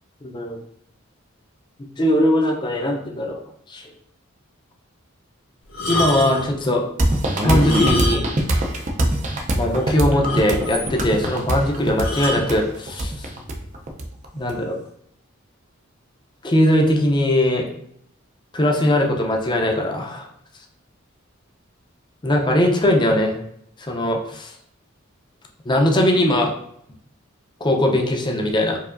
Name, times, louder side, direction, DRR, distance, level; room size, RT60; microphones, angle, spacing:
voice 1, 0.2-0.6 2.0-3.4 3.7-3.9 5.9-6.9 7.4-8.3 9.5-13.3 14.3-14.8 16.4-17.7 18.5-20.3 22.2-23.4 23.8-24.5 25.7-26.5 27.6-28.8, left 1 dB, 20° left, 1 dB, 0.5 m, -20 dB
sound 1, 5.7-6.5 7.5-8.5 8.8-8.9 9.4-9.5 9.8-9.9 10.2-10.9 12.0-12.5 13.3-13.6, left 2 dB, 75° left, 1.0 m, -27 dB
sound 2, 7.0-14.5, right 1 dB, 35° right, 0.5 m, -22 dB
4.6 x 2.7 x 2.5 m, 0.69 s
head